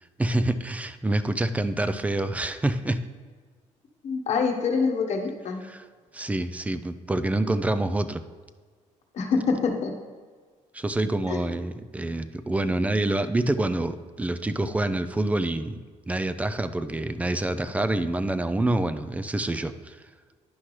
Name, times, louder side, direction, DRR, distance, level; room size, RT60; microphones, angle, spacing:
voice 1, 0.2-3.0 5.6-5.9 6.1-8.2 10.7-15.8 16.1-20.0, right 2 dB, 10° right, 11 dB, 0.4 m, -27 dB
voice 2, 4.0-5.6 9.1-9.9 11.3-11.5, left 5 dB, 55° left, 3 dB, 1.2 m, -25 dB
10.0 x 5.8 x 3.2 m, 1.5 s
cardioid pair, 120°, 13 cm